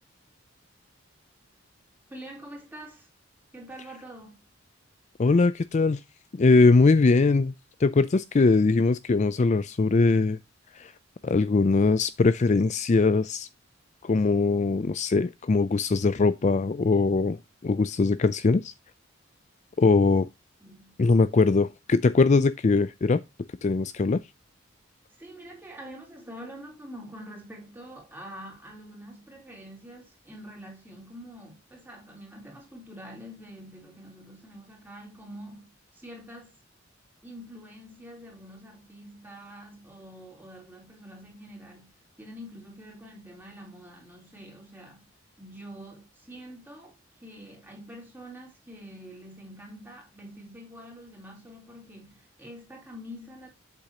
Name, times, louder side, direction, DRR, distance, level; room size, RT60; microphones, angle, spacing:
voice 1, 2.1-3.1 3.5-4.4 20.6-21.0 25.1-36.6 37.2-45.1 45.4-53.5, equal, 10° right, 3.4 m, -45 dB
voice 2, 5.2-6.0 6.3-7.5 7.8-10.4 10.7-10.9 11.2-13.5 14.0-18.7 19.8-20.3 21.0-23.2 23.6-24.2, left 3 dB, 35° left, 0.4 m, -21 dB
8.1 x 6.8 x 2.9 m
head